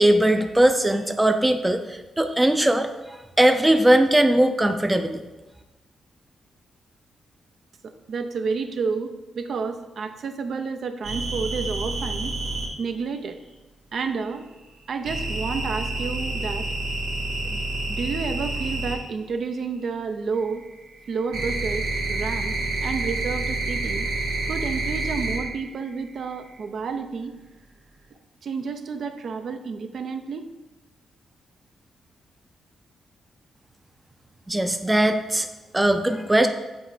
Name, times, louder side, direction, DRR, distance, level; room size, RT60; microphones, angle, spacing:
voice 1, 0.0-5.2 34.5-35.5 35.7-36.5, right 1 dB, 10° right, 7 dB, 0.5 m, -20 dB
voice 2, 7.8-12.3 12.8-13.4 13.9-14.4 14.9-16.7 17.4-17.6 17.9-20.6 21.1-24.1 24.5-27.4 28.4-30.5, right 5 dB, 60° right, 7 dB, 0.5 m, -30 dB
sound 1, 11.0-12.7 15.0-19.0 20.3-25.6 25.9-26.5, right 2 dB, 85° right, 1.6 m, -28 dB
7.1 x 3.1 x 5.0 m, 1.1 s
cardioid pair, 90°, 0 cm